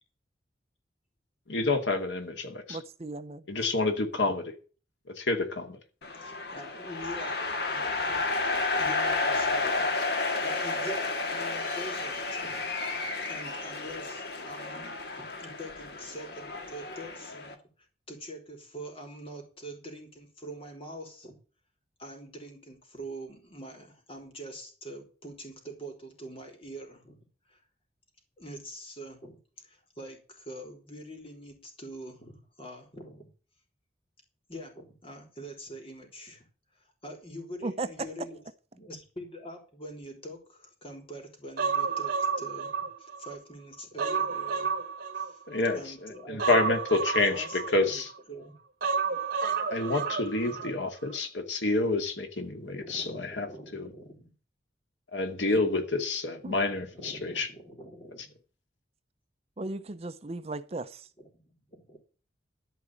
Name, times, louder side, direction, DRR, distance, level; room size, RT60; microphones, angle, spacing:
voice 1, 1.5-2.8 3.5-4.5 5.2-5.8 45.5-47.4 47.7-48.1 49.7-53.5 53.7-53.9 55.1-57.5, left 2 dB, 90° left, 2.4 m, -28 dB
voice 2, 2.7-3.7 37.6-37.9 56.4-56.6 59.6-61.1, right 2 dB, 35° right, 0.7 m, -36 dB
sound 1, 6.0-17.5, left 3 dB, 60° left, 2.0 m, -31 dB
voice 3, 6.1-12.6 13.2-17.6 18.1-21.4 22.0-27.2 27.5-27.6 28.4-33.3 34.5-36.5 36.7-38.4 38.7-44.7 45.2-45.4 45.8-47.0 47.3-48.6 50.5-50.7 52.6-54.3 56.8-58.3 61.2-62.0, right 1 dB, 30° left, 3.7 m, -44 dB
Human voice, 41.6-43.4 43.7-45.7 46.4-48.2 48.8-50.7 51.0-51.1, right 5 dB, 55° right, 2.2 m, -31 dB
13.0 x 5.1 x 8.8 m
head